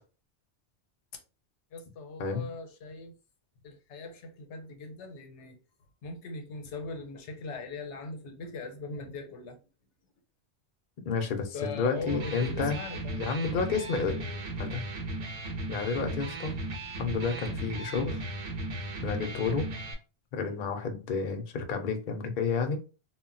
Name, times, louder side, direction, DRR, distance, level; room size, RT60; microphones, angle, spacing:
voice 1, 1.7-3.2 3.6-5.6 6.0-9.6 11.5-13.2 14.2-14.4 20.4-20.6, left 3 dB, 80° left, 0.9 m, -40 dB
voice 2, 11.1-12.8 13.2-14.2 14.6-14.8 15.7-16.6 17.0-18.2 19.0-19.7 20.3-22.8, left 5 dB, 55° left, 0.6 m, -30 dB
Electric guitar, 11.9-19.9, right 1 dB, 60° right, 0.7 m, -36 dB
2.2 x 2.0 x 3.7 m
omnidirectional pair, 1.2 m